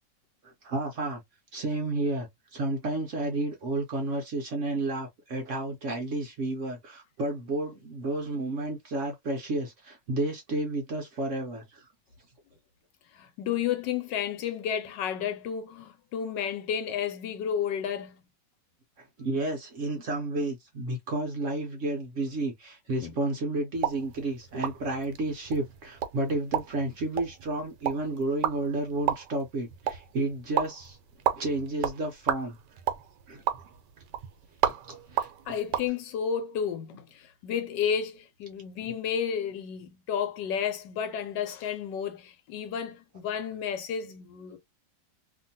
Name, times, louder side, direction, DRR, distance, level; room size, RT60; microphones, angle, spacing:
voice 1, 0.4-1.2 1.5-11.9 19.0-31.0 31.4-32.6 33.3-33.4 34.9-35.3 38.8-38.9, right 2 dB, 55° right, 0.9 m, -31 dB
voice 2, 13.1-18.2 23.0-23.1 35.5-44.6, left 8 dB, 85° left, 1.4 m, -32 dB
sound 1, 23.7-35.9, right 10 dB, 80° right, 1.3 m, -33 dB
2.9 x 2.7 x 2.6 m
omnidirectional pair, 1.9 m